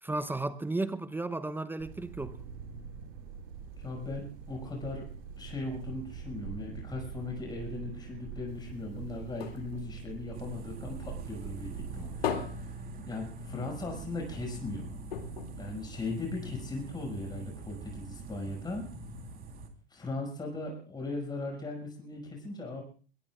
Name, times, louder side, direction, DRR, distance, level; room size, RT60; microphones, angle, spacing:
voice 1, 0.0-2.4, right 2 dB, 5° right, 0.8 m, -34 dB
sound 1, 1.8-12.2, right 6 dB, 55° right, 6.0 m, -44 dB
voice 2, 3.8-5.0 5.4-15.0 15.6-18.9 19.9-22.8, left 2 dB, 15° left, 6.3 m, -38 dB
Putting a bottle of wine on the counter, 8.5-11.1 11.5-13.8 14.1-14.2 14.5-14.6 15.1-16.6 17.2-17.3, left 7 dB, 75° left, 2.7 m, -39 dB
sound 2, 10.3-19.7, right 3 dB, 30° right, 3.6 m, -44 dB
23.0 x 22.0 x 2.5 m
hypercardioid pair, 100°, 30 cm